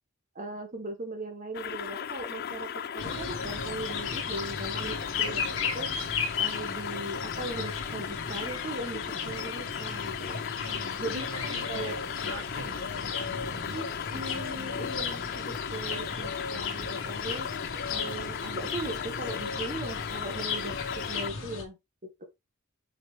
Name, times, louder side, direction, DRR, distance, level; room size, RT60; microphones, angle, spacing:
voice 1, 0.3-5.9 6.4-10.4 11.0-12.0 13.7-17.5 17.9-20.8 21.1-22.2, right 2 dB, 35° right, 1.3 m, -39 dB
sound 1, 1.5-21.3, left 8 dB, 45° left, 0.4 m, -37 dB
sound 2, 3.0-21.6, left 5 dB, 70° left, 1.8 m, -35 dB
voice 2, 10.6-13.8 14.1-14.9, right 2 dB, 75° right, 1.6 m, -44 dB
5.8 x 5.5 x 3.3 m
head